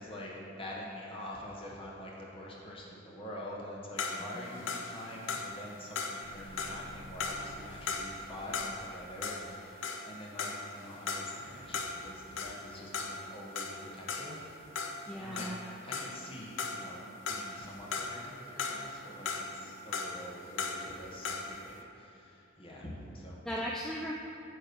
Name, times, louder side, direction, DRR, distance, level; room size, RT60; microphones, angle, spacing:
voice 1, 0.0-15.5 15.8-23.4, left 1 dB, 25° left, -4 dB, 1.2 m, -46 dB
sound 1, 4.0-9.0 9.2-16.3 16.6-18.3 18.6-21.6, left 4 dB, 65° left, 0.6 m, -38 dB
voice 2, 4.2-4.6 15.1-15.7 23.5-24.1, equal, 5° left, -2 dB, 0.3 m, -38 dB
sound 2, 6.2-9.4, equal, 40° right, 0.9 m, -52 dB
9.1 x 3.2 x 6.7 m, 2.6 s
head